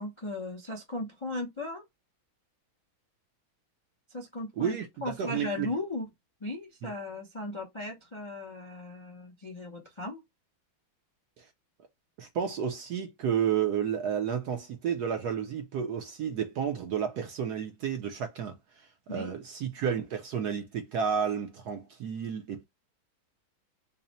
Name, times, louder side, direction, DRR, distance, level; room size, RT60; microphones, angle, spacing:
voice 1, 0.0-1.8 4.1-4.8 5.0-6.1 6.4-10.2 19.1-19.3, left 2 dB, 45° left, 0.3 m, -37 dB
voice 2, 5.2-5.7 6.8-6.9 11.4-11.5 12.2-22.6, right 8 dB, 70° right, 1.0 m, -31 dB
4.0 x 2.1 x 4.0 m
omnidirectional pair, 2.2 m